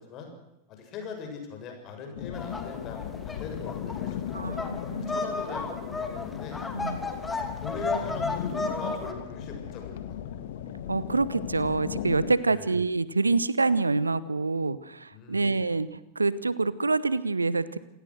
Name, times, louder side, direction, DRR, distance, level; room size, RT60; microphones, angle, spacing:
voice 1, 0.7-4.6 5.1-6.6 7.6-10.3 12.5-12.7 15.1-15.5, left 4 dB, 35° left, 4 dB, 7.2 m, -41 dB
sound 1, 2.2-12.4, left 9 dB, 55° left, 1.8 m, -36 dB
sound 2, 2.3-9.1, left 3 dB, 10° left, 3.1 m, -34 dB
voice 2, 4.3-5.1 6.7-7.0 10.9-17.8, right 3 dB, 80° right, 18 dB, 0.9 m, -26 dB
28.0 x 17.5 x 6.4 m, 0.90 s
figure-of-eight pair, 90°, 0 cm